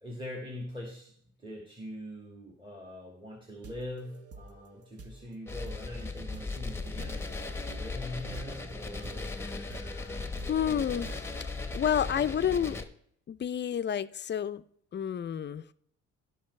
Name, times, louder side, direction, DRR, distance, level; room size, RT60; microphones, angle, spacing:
voice 1, 0.0-9.2, left 1 dB, 15° right, 0 dB, 1.8 m, -43 dB
sound 1, 3.5-11.8, right 2 dB, 50° right, 1.0 m, -51 dB
sound 2, 5.5-12.8, left 3 dB, 10° left, 1.0 m, -37 dB
voice 2, 9.3-11.4 11.7-12.8 13.3-14.6 14.9-15.7, left 9 dB, 35° left, 14 dB, 0.5 m, -31 dB
16.0 x 5.5 x 3.2 m, 0.68 s
cardioid pair, 90°, 30 cm